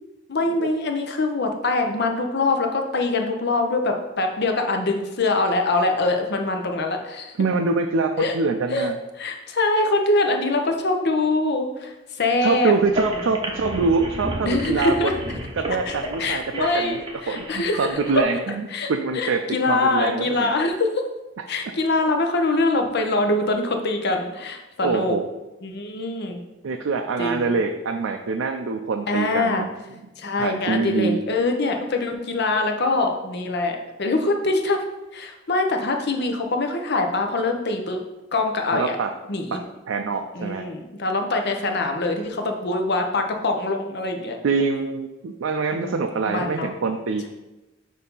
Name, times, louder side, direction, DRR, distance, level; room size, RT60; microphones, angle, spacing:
voice 1, 0.3-7.3 8.2-8.3 8.7-8.9 9.2-12.7 13.3-13.4 14.5-15.1 15.9-18.2 18.7-21.1 21.5-25.2 25.6-26.4 27.2-27.5 29.1-29.6 30.2-34.8 35.1-38.0 38.3-39.0 39.3-39.6 40.3-44.4 45.7-46.7, left 2 dB, 55° left, 4 dB, 0.8 m, -24 dB
voice 2, 7.4-8.9 12.4-15.1 15.6-19.4 19.7-20.5 24.8-25.2 26.6-29.7 30.4-31.2 38.7-39.1 39.5-39.6 39.9-40.6 44.4-47.3, right 4 dB, 80° right, 4 dB, 0.4 m, -24 dB
sound 1, 12.8-18.2, right 1 dB, 25° right, 0.7 m, -32 dB
6.5 x 2.7 x 5.4 m, 1.0 s
head